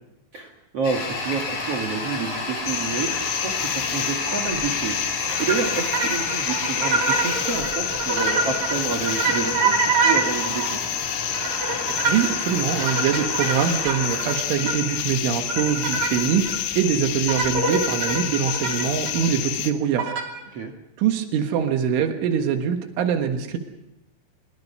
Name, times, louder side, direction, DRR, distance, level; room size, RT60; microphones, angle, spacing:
voice 1, 0.3-10.8 16.0-16.3 20.5-20.7, right 5 dB, 65° right, 6 dB, 1.5 m, -29 dB
Toilet flush, 0.8-17.6, left 3 dB, 45° left, 6.6 m, -32 dB
sound 1, 2.7-19.7, left 11 dB, 85° left, 3.9 m, -29 dB
sound 2, 5.3-10.7 11.3-15.0 15.5-16.6 17.3-19.3 20.0-20.4, right 4 dB, 45° right, 3.8 m, -25 dB
voice 2, 12.1-20.1 21.0-23.6, right 8 dB, 80° right, 5 dB, 4.0 m, -23 dB
25.0 x 22.5 x 5.6 m, 0.92 s
omnidirectional pair, 5.5 m